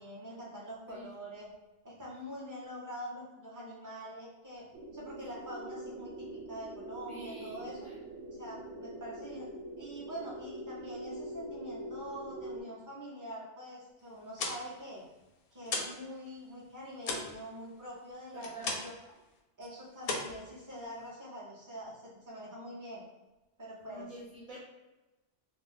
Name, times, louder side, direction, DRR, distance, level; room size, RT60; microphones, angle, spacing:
voice 1, 0.0-1.5 1.8-4.7 4.9-7.9 8.4-9.5 9.8-15.0 15.5-18.9 19.6-23.0 23.6-24.1, equal, 20° right, -6 dB, 0.6 m, -45 dB
sound 1, 4.7-12.6, right 2 dB, 85° right, 1.0 m, -44 dB
voice 2, 7.1-8.0 18.3-18.8 23.9-24.6, right 1 dB, 55° right, -6 dB, 0.4 m, -47 dB
sound 2, 14.1-16.1 16.3-19.1 19.4-19.7 20.0-21.1, left 3 dB, 65° left, 0.6 m, -38 dB
2.5 x 2.3 x 3.5 m, 1.1 s
omnidirectional pair, 1.2 m